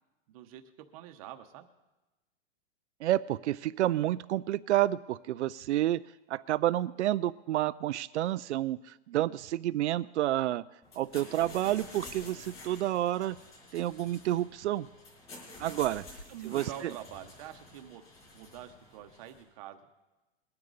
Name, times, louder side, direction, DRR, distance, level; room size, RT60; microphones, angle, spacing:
voice 1, 0.3-1.7 16.3-18.0 18.3-19.8, right 11 dB, 30° right, 7 dB, 1.0 m, -46 dB
voice 2, 3.0-6.0 6.3-10.6 11.0-13.4 13.7-14.9 15.6-16.2 16.4-16.7, right 14 dB, 80° right, 13 dB, 0.5 m, -29 dB
sound 1, 10.8-19.4, left 2 dB, 15° left, 5.1 m, -50 dB
22.0 x 9.6 x 4.0 m, 1.1 s
hypercardioid pair, 165°, 34 cm